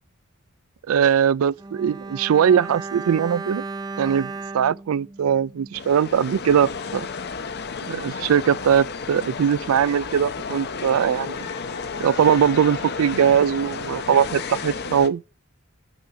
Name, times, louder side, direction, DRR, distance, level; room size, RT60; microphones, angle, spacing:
voice 1, 0.9-3.6 4.0-7.1 7.8-11.5 12.0-15.2, right 8 dB, 85° right, 0.4 m, -21 dB
Bowed string instrument, 1.6-6.0 6.3-6.4, right 4 dB, 20° right, 0.5 m, -35 dB
sound 1, 5.7-15.1, left 5 dB, 50° left, 0.7 m, -32 dB
8.4 x 5.8 x 4.7 m
head